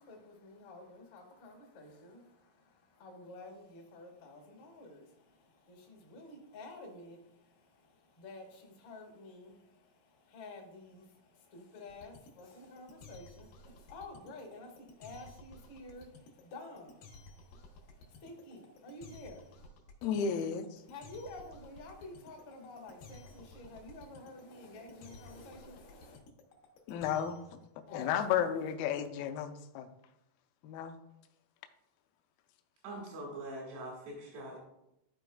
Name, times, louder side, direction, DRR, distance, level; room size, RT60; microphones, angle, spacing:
voice 1, 0.0-19.7 20.8-26.2 27.9-28.2, left 2 dB, 55° left, 0 dB, 1.3 m, -51 dB
sound 1, 11.9-27.5, left 2 dB, 70° left, 2.3 m, -54 dB
voice 2, 20.0-20.8 26.9-27.4 27.9-29.9 30.6-31.0, left 8 dB, 85° left, 6 dB, 2.1 m, -33 dB
voice 3, 32.8-34.6, right 1 dB, 90° right, -3 dB, 4.0 m, -43 dB
13.5 x 4.6 x 2.3 m, 0.85 s
omnidirectional pair, 4.8 m